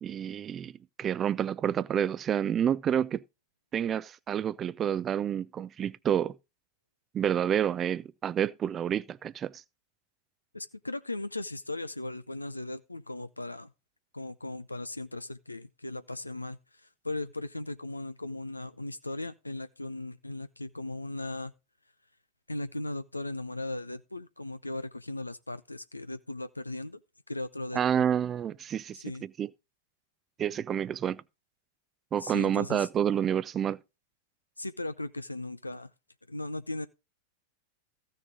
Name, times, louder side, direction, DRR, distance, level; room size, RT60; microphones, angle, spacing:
voice 1, 0.0-0.7 1.0-3.2 3.7-6.4 7.1-9.5 27.7-29.5 30.4-31.2 32.1-33.8, right 9 dB, 25° right, 0.5 m, -29 dB
voice 2, 10.5-13.7 14.1-21.5 22.5-27.0 27.3-28.0 28.9-29.2 32.2-32.9 34.6-35.9 36.3-36.9, left 2 dB, 85° left, 0.5 m, -37 dB
15.0 x 6.5 x 3.8 m
figure-of-eight pair, 90°, 0 cm